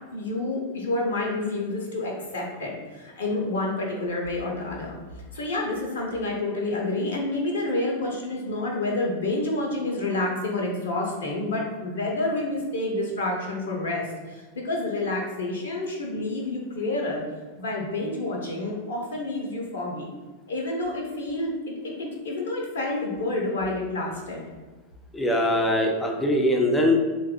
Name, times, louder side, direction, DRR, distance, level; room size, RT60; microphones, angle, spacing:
voice 1, 0.1-5.0 5.3-17.2 17.6-20.1 20.5-24.4, left 2 dB, 60° left, 0 dB, 0.5 m, -29 dB
voice 2, 25.1-27.0, left 1 dB, 10° left, 1 dB, 0.5 m, -22 dB
3.3 x 2.3 x 3.5 m, 1.3 s
figure-of-eight pair, 90°, 0 cm